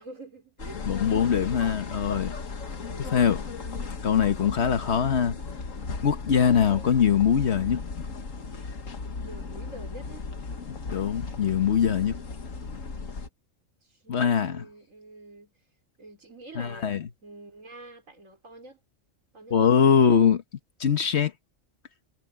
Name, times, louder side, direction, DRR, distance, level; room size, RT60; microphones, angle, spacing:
voice 1, 0.0-0.8 2.8-3.3 9.2-10.2 13.9-15.5 16.0-18.8 19.3-20.0, right 2 dB, 90° right, 5.0 m, -47 dB
sound 1, 0.6-13.3, left 4 dB, 90° left, 2.0 m, -36 dB
voice 2, 0.8-2.3 3.0-3.4 4.0-5.4 6.0-7.8 10.7-12.2 14.1-14.7 16.5-17.1 19.5-20.4 20.8-21.3, left 7 dB, 60° left, 1.4 m, -22 dB
omnidirectional pair, 1.3 m